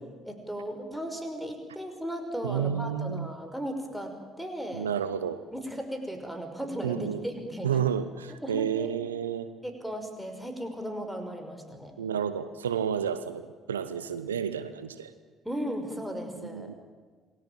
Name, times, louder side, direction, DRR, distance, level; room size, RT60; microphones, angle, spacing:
voice 1, 0.3-4.9 5.5-7.8 8.4-8.9 9.6-11.9 15.4-16.7, equal, ahead, 5 dB, 5.6 m, -36 dB
voice 2, 2.4-3.3 4.7-5.4 6.8-7.3 7.6-9.5 12.0-15.1 16.4-16.7, right 8 dB, 80° right, 13 dB, 0.9 m, -31 dB
27.5 x 20.5 x 9.0 m, 1.5 s
figure-of-eight pair, 50°, 0 cm